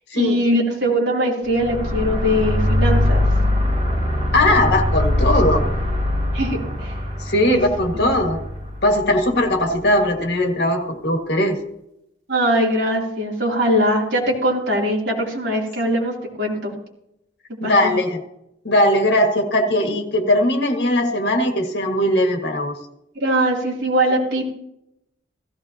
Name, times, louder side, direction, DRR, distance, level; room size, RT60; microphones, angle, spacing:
voice 1, 0.1-3.2 6.3-6.9 7.5-7.6 8.0-8.2 12.3-16.1 16.4-16.7 17.6-17.9 23.1-24.5, equal, 60° right, -3 dB, 3.3 m, -21 dB
sound 1, 1.5-9.8, left 1 dB, 35° right, 3.0 m, -22 dB
voice 2, 4.3-5.7 7.2-8.4 8.8-11.6 15.8-15.9 17.6-18.2 18.6-22.8, left 1 dB, 55° left, 3 dB, 1.9 m, -19 dB
16.5 x 14.5 x 2.9 m, 0.83 s
head